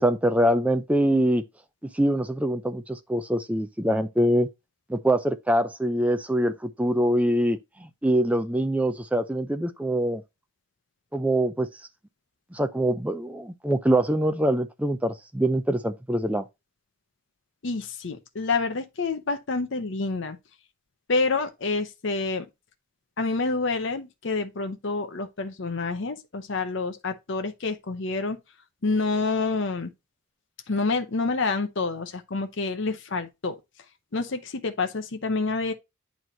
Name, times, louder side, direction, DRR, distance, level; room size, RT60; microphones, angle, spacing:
voice 1, 0.0-1.4 1.9-4.5 4.9-10.2 11.1-11.7 12.5-16.5, right 1 dB, 5° right, 0.5 m, -24 dB
voice 2, 17.6-20.4 21.1-22.5 23.2-28.4 28.8-29.9 30.7-33.6 34.1-35.7, left 3 dB, 55° left, 0.7 m, -28 dB
9.2 x 3.1 x 3.8 m
head